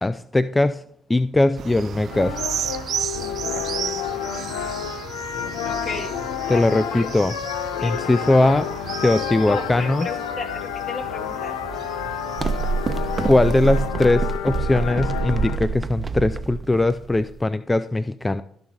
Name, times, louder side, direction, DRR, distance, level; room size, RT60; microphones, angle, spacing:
voice 1, 0.0-0.8 1.1-2.4 6.5-7.3 7.8-8.7 9.0-10.1 13.2-18.4, left 2 dB, 20° left, 13 dB, 0.4 m, -20 dB
sound 1, 1.6-13.9, right 9 dB, 65° right, 0.3 m, -34 dB
sound 2, 2.1-15.6, left 10 dB, 90° left, 0.5 m, -30 dB
voice 2, 5.6-6.1 6.4-6.6 6.9-7.1 7.8-7.9 9.5-11.6, left 4 dB, 55° left, 1 dB, 2.6 m, -33 dB
sound 3, 12.4-17.4, right 4 dB, 30° right, 0.8 m, -26 dB
13.0 x 5.7 x 3.7 m, 0.68 s
hypercardioid pair, 55°, 0 cm